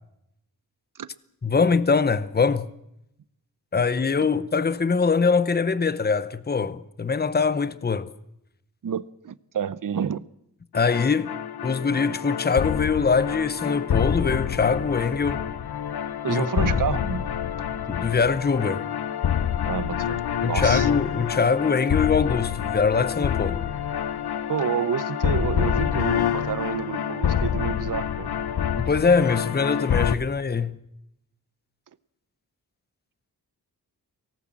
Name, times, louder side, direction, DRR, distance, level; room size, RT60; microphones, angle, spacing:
voice 1, 1.4-2.7 3.7-8.1 10.7-11.3 11.6-15.4 16.3-16.5 17.9-18.9 20.4-23.6 28.8-30.7, left 5 dB, 25° left, 0.9 m, -23 dB
voice 2, 8.8-10.2 16.2-17.3 19.6-20.2 20.5-20.9 24.5-28.3, right 8 dB, 55° right, 0.8 m, -29 dB
sound 1, 10.7-30.2, left 9 dB, 80° left, 1.0 m, -27 dB
24.0 x 18.0 x 7.6 m
wide cardioid pair, 135°, 38 cm